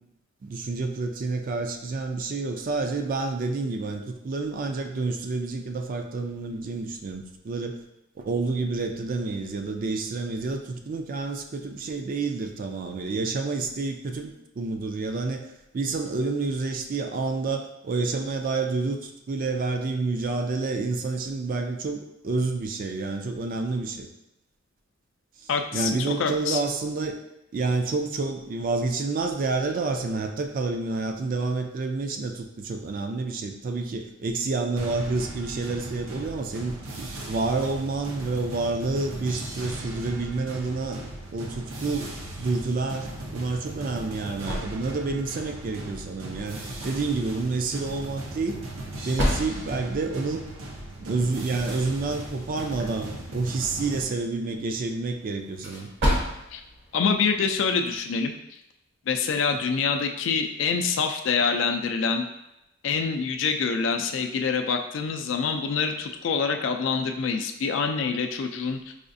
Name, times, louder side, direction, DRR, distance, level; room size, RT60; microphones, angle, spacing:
voice 1, 0.4-7.8 8.2-15.5 15.7-24.1 25.4-27.2 27.5-41.0 41.3-48.6 49.0-50.4 51.0-55.9, right 3 dB, 45° right, 4 dB, 0.4 m, -29 dB
voice 2, 25.5-26.6 56.5-56.6 56.9-58.4 59.1-62.3 62.8-68.8, left 5 dB, 65° left, 6 dB, 0.3 m, -26 dB
sound 1, 34.8-54.1, right 1 dB, 90° right, 0.7 m, -38 dB
sound 2, 43.6-58.1, equal, 60° right, 0.9 m, -35 dB
4.8 x 2.4 x 2.6 m, 0.87 s
head